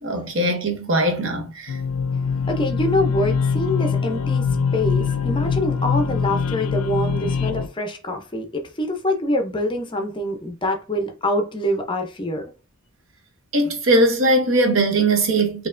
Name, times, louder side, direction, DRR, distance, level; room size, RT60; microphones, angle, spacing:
voice 1, 0.0-1.8 13.5-15.7, right 1 dB, 65° right, 0.8 m, -20 dB
sound 1, 1.7-7.7, left 5 dB, 80° left, 0.4 m, -23 dB
voice 2, 2.5-4.5 4.7-12.4, left 1 dB, 25° left, 0.5 m, -25 dB
4.3 x 2.8 x 2.5 m
head